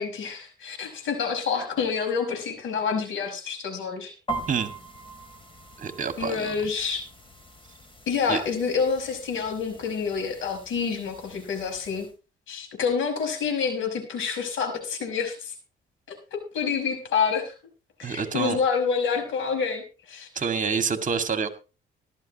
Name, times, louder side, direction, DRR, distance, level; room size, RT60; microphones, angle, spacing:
voice 1, 0.0-4.1 6.2-7.0 8.1-12.1 12.5-15.5 16.1-17.5 18.0-20.3, left 6 dB, 80° left, 5 dB, 5.7 m, -28 dB
sound 1, 4.3-12.1, right 3 dB, 25° left, 3.3 m, -41 dB
voice 2, 5.8-6.5 8.3-8.4 18.0-18.6 20.4-21.5, right 6 dB, 40° right, 7 dB, 2.2 m, -27 dB
17.5 x 13.0 x 3.1 m, 0.32 s
cardioid pair, 90°, 20 cm